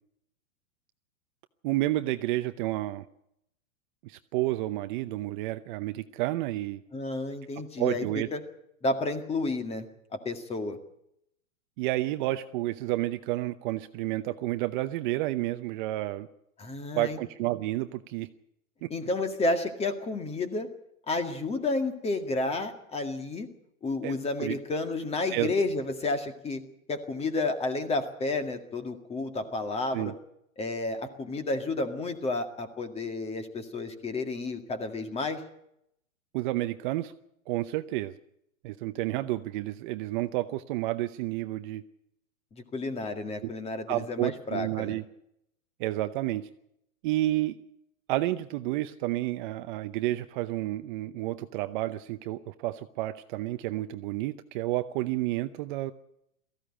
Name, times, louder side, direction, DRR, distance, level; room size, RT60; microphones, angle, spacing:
voice 1, 1.6-3.0 4.0-6.8 7.8-8.3 11.8-16.3 16.9-18.3 18.8-18.9 24.0-24.6 25.3-25.5 29.9-30.1 36.3-37.1 37.5-38.2 38.6-41.8 43.4-43.5 43.9-45.0 45.8-46.5 47.0-47.6 48.1-55.9, right 16 dB, 40° right, 10 dB, 0.8 m, -30 dB
voice 2, 6.9-8.0 8.3-8.4 8.8-9.9 10.3-10.8 16.6-17.2 18.9-20.7 21.1-23.5 23.8-26.6 26.9-30.1 30.6-35.4 42.5-45.0, left 2 dB, 15° left, 8 dB, 2.0 m, -31 dB
18.0 x 15.0 x 10.0 m, 0.77 s
hypercardioid pair, 140°, 40 cm